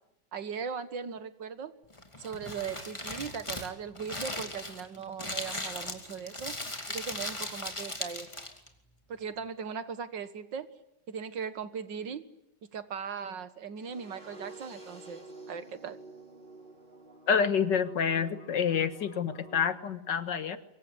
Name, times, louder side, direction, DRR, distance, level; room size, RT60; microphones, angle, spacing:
voice 1, 0.3-1.8 2.2-6.6 6.9-8.3 9.1-10.7 11.1-12.2 12.6-16.0, right 6 dB, 75° right, 12 dB, 2.2 m, -39 dB
Crumpling crinkling, 1.9-8.7, left 1 dB, 15° left, 2.6 m, -38 dB
sound 1, 13.8-19.7, right 2 dB, 25° right, 4.7 m, -50 dB
voice 2, 17.3-20.6, left 7 dB, 75° left, 11 dB, 2.1 m, -28 dB
25.0 x 23.0 x 9.8 m, 0.81 s
omnidirectional pair, 2.0 m